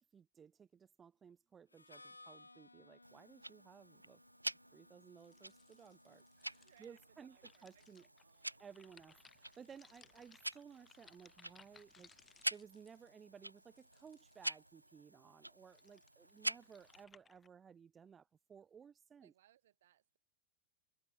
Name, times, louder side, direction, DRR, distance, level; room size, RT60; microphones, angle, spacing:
voice 1, 0.0-4.2 4.7-7.4 7.6-8.0 8.6-12.1 12.5-19.3, right 7 dB, 20° right, 1.2 m, -58 dB
Harmonica, 1.7-7.4, left 2 dB, 85° left, 0.6 m, -63 dB
Tick-tock, 3.0-17.0, right 1 dB, 85° right, 0.8 m, -48 dB
sound 1, 5.2-14.8 15.5-17.5, left 5 dB, 15° left, 3.6 m, -67 dB
voice 2, 6.6-8.7 16.3-16.8 19.2-20.2, right 12 dB, 60° right, 3.2 m, -71 dB
figure-of-eight pair, 90°, 0 cm